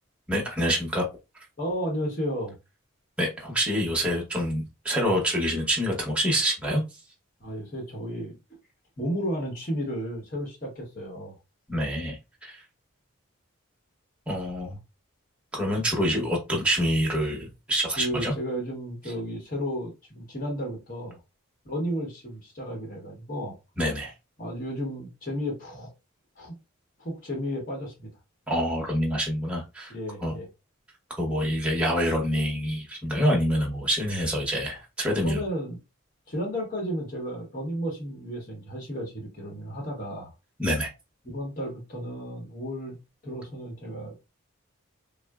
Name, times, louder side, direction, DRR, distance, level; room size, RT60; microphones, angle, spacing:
voice 1, 0.3-1.0 3.2-7.0 11.7-12.6 14.3-14.8 15.5-18.3 23.8-24.1 28.5-29.9 30.2-30.3 31.2-35.4 40.6-40.9, equal, 5° right, 0.8 m, -26 dB
voice 2, 1.6-2.6 7.4-8.6 9.0-11.3 16.1-16.3 18.0-21.2 21.6-23.6 24.4-25.9 26.4-26.5 27.0-28.1 29.9-30.5 35.2-35.8 36.3-40.3 41.2-43.0 43.2-44.3, equal, 40° left, 0.9 m, -33 dB
3.7 x 2.0 x 2.2 m
head